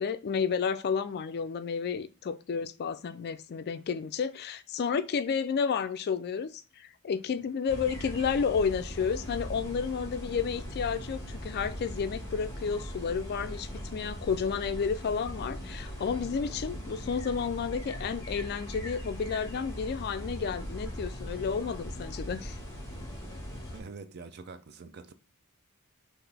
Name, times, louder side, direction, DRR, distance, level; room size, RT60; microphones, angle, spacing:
voice 1, 0.0-22.6, left 6 dB, 45° left, 0.3 m, -31 dB
sound 1, 7.7-23.8, equal, 15° left, 1.4 m, -40 dB
voice 2, 23.7-25.1, right 4 dB, 45° right, 0.5 m, -45 dB
5.8 x 2.5 x 3.3 m
head